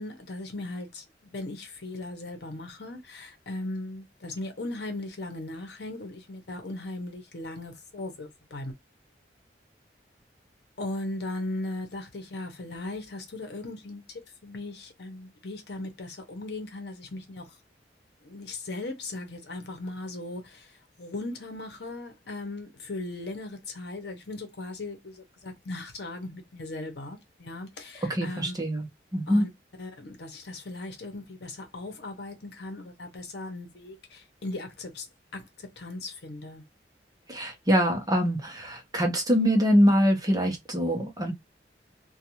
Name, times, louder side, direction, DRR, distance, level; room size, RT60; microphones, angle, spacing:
voice 1, 0.0-8.7 10.8-17.6 18.2-28.5 29.3-29.5 29.8-35.1 35.3-36.6, left 2 dB, 65° left, 0.8 m, -38 dB
voice 2, 28.1-28.9 29.1-29.4 37.3-41.3, equal, 20° right, 0.8 m, -24 dB
2.4 x 2.3 x 2.8 m
head